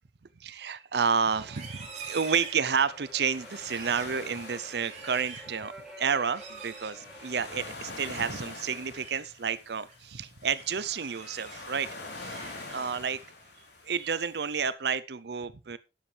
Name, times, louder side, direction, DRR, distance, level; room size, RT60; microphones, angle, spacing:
voice 1, 0.4-11.9 12.2-12.4 12.7-13.2 13.8-15.8, right 6 dB, 70° right, 16 dB, 0.6 m, -30 dB
sound 1, 1.0-14.7, left 3 dB, 75° left, 3.6 m, -46 dB
sound 2, 1.3-7.7, equal, 5° right, 5.8 m, -49 dB
Livestock farm animals working animals, 1.4-3.1 3.5-4.2 4.6-5.5 6.3-7.0 8.7-9.2 9.7-9.9 10.4-11.6 12.0-13.0 13.4-13.7 14.1-14.6, right 5 dB, 40° right, 3.8 m, -46 dB
12.5 x 10.0 x 3.3 m, 0.27 s
head